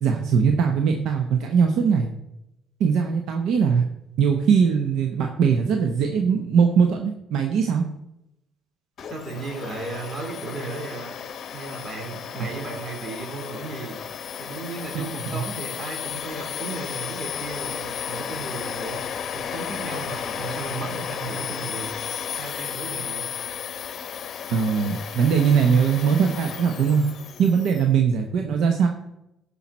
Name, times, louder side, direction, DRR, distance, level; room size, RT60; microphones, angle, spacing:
voice 1, 0.0-2.1 2.8-3.8 4.2-7.8 15.2-15.4 24.5-27.0 27.4-28.9, right 6 dB, 75° right, 4 dB, 1.0 m, -21 dB
Domestic sounds home sounds, 9.0-27.8, left 8 dB, 50° left, 0.9 m, -34 dB
voice 2, 9.0-11.1 11.5-14.0 14.4-19.0 19.3-21.9 22.4-23.2 27.5-27.8, right 3 dB, 45° right, 0 dB, 3.8 m, -35 dB
14.5 x 5.7 x 4.3 m, 0.88 s
cardioid pair, 100°, 0 cm